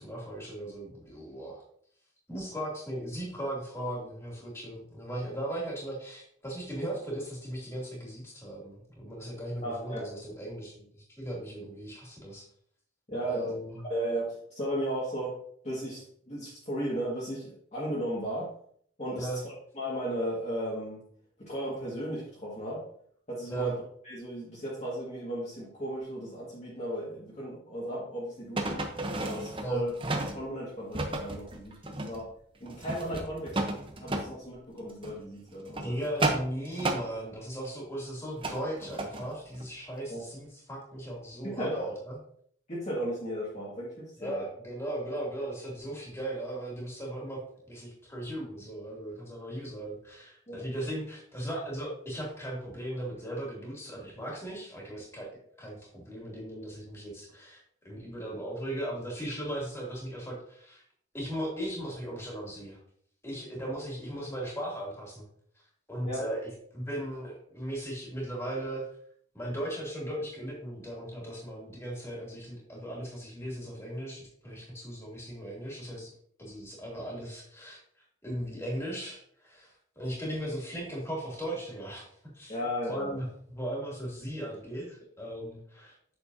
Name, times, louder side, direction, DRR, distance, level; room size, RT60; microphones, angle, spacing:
voice 1, 0.0-1.6 2.3-12.5 13.2-13.8 19.2-19.4 23.5-23.7 29.6-29.8 35.8-42.2 44.2-55.3 55.6-57.6 57.8-60.8 61.1-62.8 63.2-65.2 65.9-68.8 69.3-76.1 76.4-77.8 78.2-82.6 82.9-85.9, right 1 dB, 15° left, -4 dB, 2.6 m, -37 dB
voice 2, 9.6-10.1 13.1-13.5 13.9-15.4 15.6-18.5 19.0-19.3 19.8-21.0 21.4-22.8 23.3-23.7 24.0-28.9 29.2-29.9 30.3-32.3 32.6-33.6 34.0-36.0 40.1-40.2 41.4-41.9 42.7-44.3 50.5-50.6 66.0-66.2 82.5-83.2, right 1 dB, 35° left, -6 dB, 1.8 m, -35 dB
sound 1, 28.6-30.4 30.9-32.3 32.6-34.3 34.9-35.1 35.5-37.1 38.4-39.3 39.5-39.6, right 2 dB, 25° right, 0.8 m, -32 dB
8.2 x 6.5 x 2.7 m, 0.62 s
head